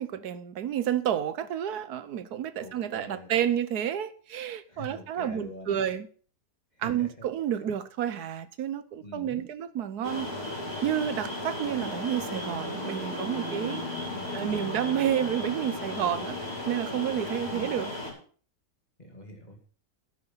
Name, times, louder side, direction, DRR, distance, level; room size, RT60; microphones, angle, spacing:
voice 1, 0.0-6.1 6.8-10.3 10.8-13.8 14.3-16.4 16.7-17.9, right 10 dB, 85° right, 1.4 m, -30 dB
voice 2, 2.6-3.3 4.7-5.8 6.8-7.1 9.0-9.5 11.6-11.7 14.1-14.6 17.5-17.8 19.0-19.6, left 1 dB, 25° left, 2.6 m, -44 dB
sound 1, 10.0-18.1, left 1 dB, 65° left, 5.7 m, -35 dB
12.0 x 8.9 x 5.7 m
omnidirectional pair, 1.6 m